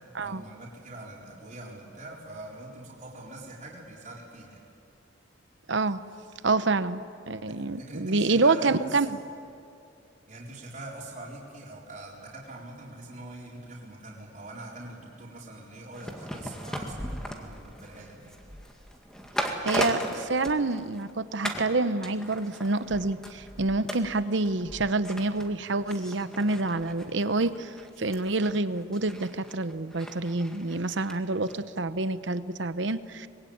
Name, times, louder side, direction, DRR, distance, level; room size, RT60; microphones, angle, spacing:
voice 1, 0.2-4.6 7.5-9.1 10.3-18.3, right 2 dB, 40° right, -4 dB, 4.3 m, -43 dB
voice 2, 5.7-6.0 6.4-9.2 19.6-33.3, right 3 dB, 70° right, 13 dB, 0.9 m, -27 dB
sound 1, 15.9-21.1 21.4-21.7 22.0-31.2 31.5-31.6, equal, 5° left, 2.0 m, -37 dB
25.0 x 21.5 x 8.7 m, 2.5 s
head